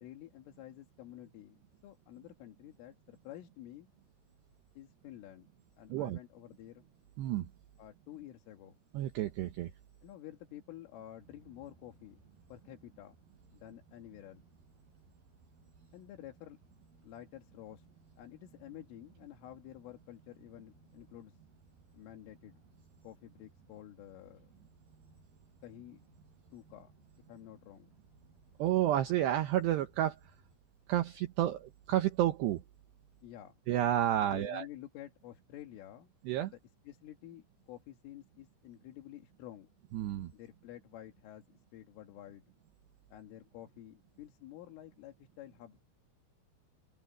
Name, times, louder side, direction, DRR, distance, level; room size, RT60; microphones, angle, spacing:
voice 1, 0.0-3.9 4.8-5.5 5.8-6.8 7.8-8.8 10.0-12.2 12.5-13.1 13.5-14.4 15.9-16.6 17.0-17.9 18.2-21.4 21.9-22.6 23.0-24.5 25.6-26.0 26.5-26.9 27.3-27.9 33.2-33.5 34.2-36.1 36.9-39.7 40.3-42.4 43.1-45.8, left 13 dB, 80° left, 4.5 m, -50 dB
voice 2, 8.9-9.7 28.6-30.2 30.9-32.6 33.7-34.7 36.2-36.5 39.9-40.3, right 12 dB, 70° right, 2.8 m, -30 dB
sound 1, 11.2-30.6, right 3 dB, 45° right, 8.7 m, -64 dB
open air
omnidirectional pair, 5.7 m